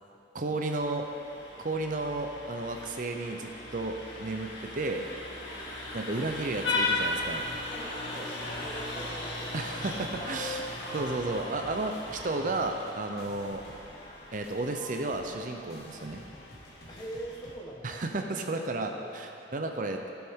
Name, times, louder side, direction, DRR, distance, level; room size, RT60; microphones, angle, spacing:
voice 1, 0.3-1.0 1.6-5.0 5.9-7.4 9.5-13.6 14.3-16.2 17.8-20.1, right 2 dB, 45° right, 4 dB, 0.6 m, -33 dB
Vehicle horn car horn honking, 0.7-17.5, left 2 dB, 75° left, 1.8 m, -37 dB
voice 2, 6.1-6.7 7.7-9.9 16.9-18.0 18.7-19.9, right 1 dB, 25° left, -3 dB, 1.4 m, -44 dB
sound 1, 7.5-9.1 9.4-17.6, equal, 55° left, 1.6 m, -54 dB
15.5 x 7.0 x 3.6 m, 2.6 s
head